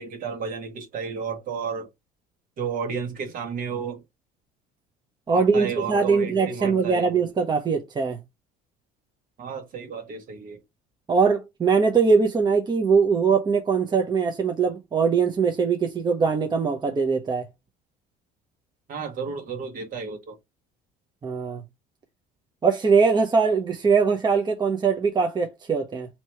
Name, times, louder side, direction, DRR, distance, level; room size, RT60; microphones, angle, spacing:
voice 1, 0.0-1.9 2.6-4.0 5.3-7.1 9.4-10.6 18.9-20.3, right 6 dB, 50° right, 1.5 m, -32 dB
voice 2, 5.3-8.2 11.1-17.5 21.2-21.6 22.6-26.1, right 5 dB, 25° right, 0.8 m, -22 dB
3.0 x 2.8 x 4.4 m
cardioid pair, 110°, 17 cm